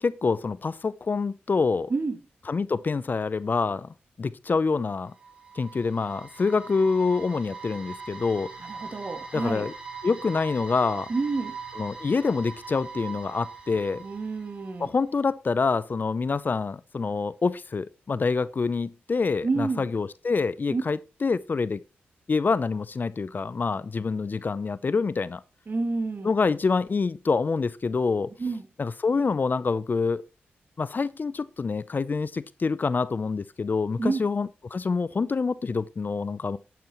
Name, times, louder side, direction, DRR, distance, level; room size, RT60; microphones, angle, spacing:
voice 1, 0.0-1.9 2.5-3.9 4.2-5.1 5.6-8.5 9.3-9.7 10.0-11.1 11.8-14.0 14.8-21.8 22.3-25.4 26.2-28.3 28.8-30.2 30.8-36.6, left 4 dB, 45° left, 0.6 m, -26 dB
sound 1, 4.9-15.0, right 4 dB, 20° right, 5.2 m, -41 dB
voice 2, 8.6-9.7 11.1-11.6 14.0-14.9 19.4-19.9 20.7-20.8 25.7-26.3 28.4-28.6 34.0-34.2, right 3 dB, 45° right, 2.1 m, -29 dB
10.5 x 9.5 x 3.1 m
cardioid pair, 55°, 4 cm